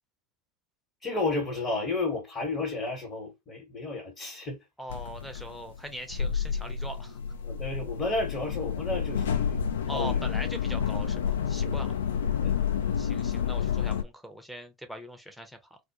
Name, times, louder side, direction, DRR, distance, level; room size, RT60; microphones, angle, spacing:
voice 1, 1.0-4.6 7.4-9.6 9.9-10.2 11.6-11.9 12.4-12.7, left 3 dB, 30° left, 1.1 m, -32 dB
voice 2, 4.8-7.2 9.9-11.9 13.0-15.8, equal, ahead, 0.6 m, -41 dB
sound 1, 4.9-14.0, left 7 dB, 70° left, 0.3 m, -29 dB
2.1 x 2.1 x 2.7 m
figure-of-eight pair, 80°, 0 cm